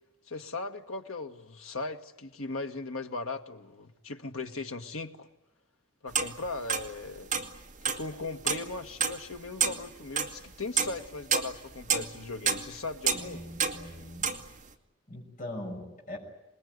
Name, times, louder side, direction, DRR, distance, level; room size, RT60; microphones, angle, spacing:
voice 1, 0.3-5.3 6.0-7.3 7.9-13.4, left 3 dB, 85° left, 5 dB, 1.7 m, -38 dB
sound 1, 6.2-6.9 7.3-8.1 8.5-8.8 9.0-9.2 9.6-9.8 10.2-10.3 10.8-14.4, right 6 dB, 35° right, 2.2 m, -28 dB
voice 2, 13.1-14.3 15.1-16.2, left 1 dB, 40° left, -1 dB, 6.6 m, -41 dB
27.5 x 20.5 x 9.6 m, 0.94 s
head